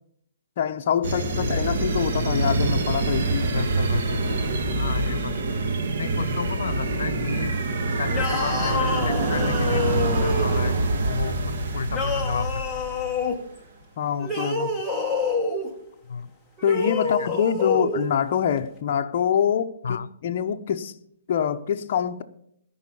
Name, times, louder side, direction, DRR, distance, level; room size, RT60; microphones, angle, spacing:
voice 1, 0.6-3.5 14.0-14.7 16.6-20.9 21.3-22.2, left 8 dB, 40° left, 0.7 m, -25 dB
sound 1, 1.0-13.3, right 2 dB, 55° right, 1.4 m, -25 dB
voice 2, 1.1-1.6 3.5-5.7 6.0-7.5 8.0-13.0 16.0-16.3 17.0-17.3 19.8-20.1, left 6 dB, 80° left, 0.7 m, -33 dB
sound 2, 8.1-10.8 11.9-13.4 14.2-15.7 16.6-18.1, left 3 dB, ahead, 1.3 m, -27 dB
13.5 x 5.5 x 8.6 m
hypercardioid pair, 165°, 0 cm